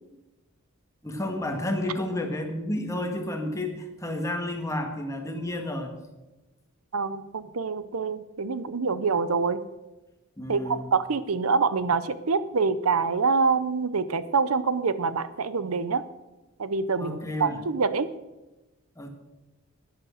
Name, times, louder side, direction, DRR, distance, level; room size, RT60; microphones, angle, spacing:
voice 1, 1.0-5.9 10.4-10.9 17.0-17.6 19.0-19.1, left 1 dB, 15° left, 3 dB, 1.8 m, -31 dB
voice 2, 6.9-9.6 10.5-16.0 16.6-18.1, right 4 dB, 85° right, 14 dB, 0.7 m, -26 dB
11.0 x 10.5 x 6.5 m, 1.1 s
head